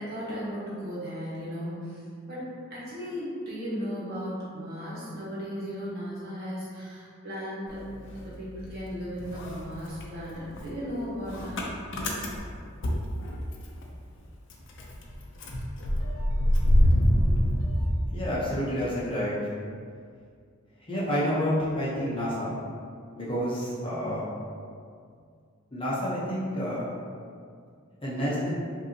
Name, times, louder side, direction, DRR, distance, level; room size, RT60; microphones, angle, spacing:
voice 1, 0.0-2.0 2.2-11.6, equal, 50° right, -9 dB, 1.4 m, -36 dB
Motor vehicle (road) / Engine starting, 7.7-8.9 9.2-13.8 14.2-14.3 14.5-18.6, equal, 60° left, 0.6 m, -26 dB
voice 2, 18.1-19.4 20.9-22.5 23.1-24.3 25.7-26.8 28.0-28.5, equal, 25° left, -8 dB, 0.8 m, -29 dB
5.4 x 2.7 x 2.8 m, 2.2 s
head